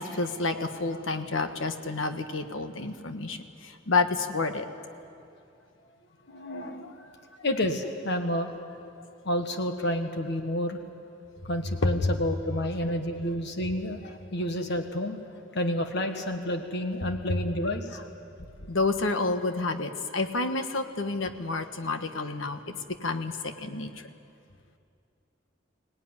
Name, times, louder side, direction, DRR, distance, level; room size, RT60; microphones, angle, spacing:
voice 1, 0.0-4.7 6.8-6.9 11.8-11.9 18.7-23.9, left 3 dB, 90° left, 7 dB, 1.4 m, -29 dB
voice 2, 6.3-6.9 7.4-8.5 9.2-10.8 11.5-15.2 15.5-18.0 18.6-18.7, left 1 dB, 60° left, 5 dB, 1.5 m, -30 dB
23.5 x 18.0 x 9.8 m, 2.6 s
head